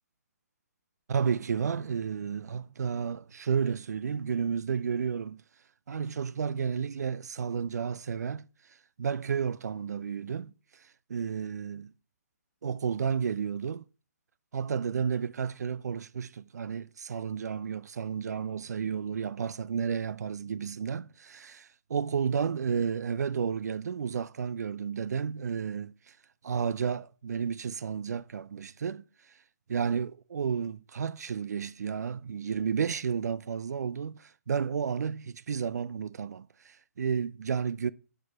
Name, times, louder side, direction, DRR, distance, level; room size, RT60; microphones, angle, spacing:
voice 1, 1.1-5.4 5.9-8.5 9.0-11.9 12.6-13.8 14.5-26.2 26.4-29.4 29.7-37.9, right 6 dB, 80° right, 0.4 m, -32 dB
6.2 x 5.1 x 5.8 m
hypercardioid pair, 155°, 9 cm